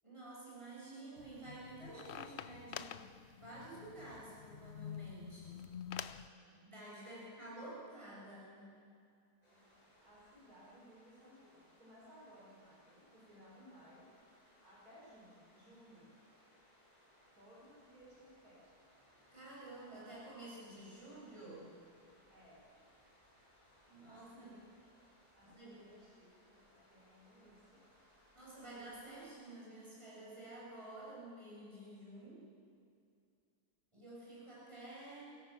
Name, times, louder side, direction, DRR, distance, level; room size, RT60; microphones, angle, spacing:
voice 1, 0.0-5.7 6.6-8.8 19.3-21.7 23.9-24.5 25.4-25.8 28.3-32.5 33.9-35.3, right 2 dB, 20° right, -7 dB, 7.7 m, -51 dB
sound 1, 1.2-6.3, left 9 dB, 60° left, 0.7 m, -48 dB
voice 2, 6.3-6.6 7.0-7.2 9.4-14.2 14.6-16.2 17.3-18.9 22.3-22.7 24.1-24.6 25.4-27.9, equal, 70° right, -5 dB, 5.8 m, -61 dB
sound 2, 9.4-29.3, equal, 25° left, 6.3 m, -68 dB
24.0 x 17.0 x 7.5 m, 2.4 s
omnidirectional pair, 1.7 m